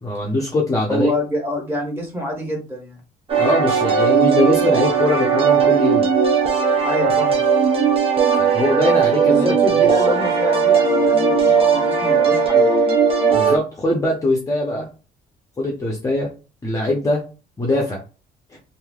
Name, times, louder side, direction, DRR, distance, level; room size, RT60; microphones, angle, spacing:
voice 1, 0.0-1.1 3.4-6.1 8.4-9.6 13.3-14.9 15.6-16.3 16.6-17.2 17.6-18.0, left 1 dB, 20° left, -2 dB, 0.8 m, -21 dB
voice 2, 0.9-3.0 6.8-7.5 9.3-12.7, equal, 15° right, 0 dB, 1.5 m, -26 dB
sound 1, 3.3-13.6, right 6 dB, 35° right, 0.8 m, -17 dB
3.1 x 2.7 x 2.4 m, 0.33 s
cardioid pair, 110°, 17 cm